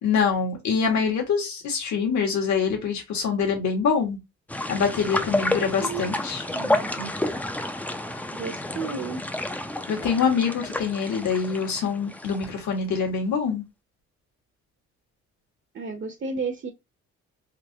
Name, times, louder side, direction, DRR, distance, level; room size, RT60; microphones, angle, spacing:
voice 1, 0.0-4.2 4.7-6.4 9.9-13.6, left 6 dB, 70° left, 1.6 m, -25 dB
sound 1, 4.5-12.7 13.0-13.1, left 1 dB, 5° left, 0.4 m, -30 dB
voice 2, 6.5-7.1 8.3-9.2 15.7-16.7, right 4 dB, 40° right, 0.8 m, -32 dB
3.8 x 2.8 x 2.7 m
cardioid pair, 90°, 30 cm